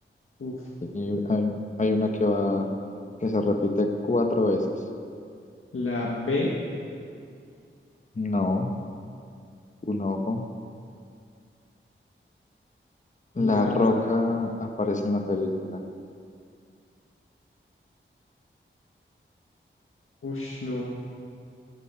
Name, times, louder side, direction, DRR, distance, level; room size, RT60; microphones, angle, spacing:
voice 1, 0.8-1.5 1.8-2.7 3.2-4.7 8.1-8.7 9.8-10.4 13.3-15.8, left 2 dB, 35° left, 4 dB, 1.1 m, -25 dB
voice 2, 5.7-6.5 13.4-14.1 20.2-20.8, left 2 dB, 85° left, -4 dB, 1.8 m, -29 dB
16.5 x 10.0 x 5.7 m, 2.3 s
wide cardioid pair, 70°, 21 cm